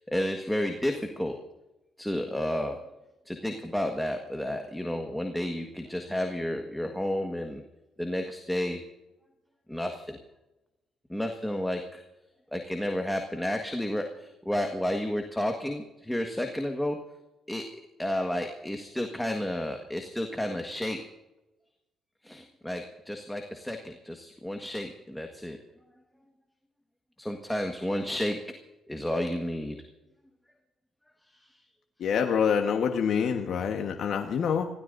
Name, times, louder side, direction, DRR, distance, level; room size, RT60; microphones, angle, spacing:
voice 1, 0.0-1.4 2.0-2.8 3.2-7.6 8.0-8.8 9.7-10.2 11.1-12.0 12.5-17.0 17.5-17.7 18.0-21.0 22.2-25.6 27.2-28.4 28.9-29.8, left 1 dB, 5° left, 3 dB, 1.6 m, -31 dB
voice 2, 32.0-34.7, left 7 dB, 65° left, 3 dB, 1.3 m, -26 dB
26.5 x 16.5 x 2.7 m, 0.98 s
cardioid pair, 90°, 0 cm